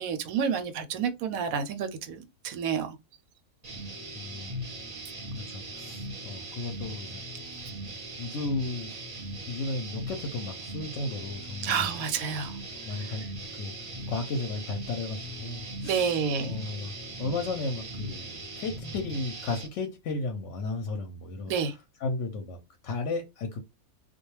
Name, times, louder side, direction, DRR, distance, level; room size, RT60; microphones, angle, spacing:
voice 1, 0.0-3.0 11.6-12.6 15.8-16.6 21.5-21.7, right 6 dB, 85° right, 1.0 m, -29 dB
sound 1, 3.6-19.7, right 1 dB, 40° right, 0.7 m, -39 dB
voice 2, 4.1-4.6 5.4-7.5 8.2-9.1 9.5-12.0 12.9-13.2 13.6-13.7 14.1-16.2 16.5-21.5 22.0-22.6 22.8-23.6, left 3 dB, 70° left, 0.8 m, -34 dB
2.3 x 2.2 x 3.0 m
omnidirectional pair, 1.4 m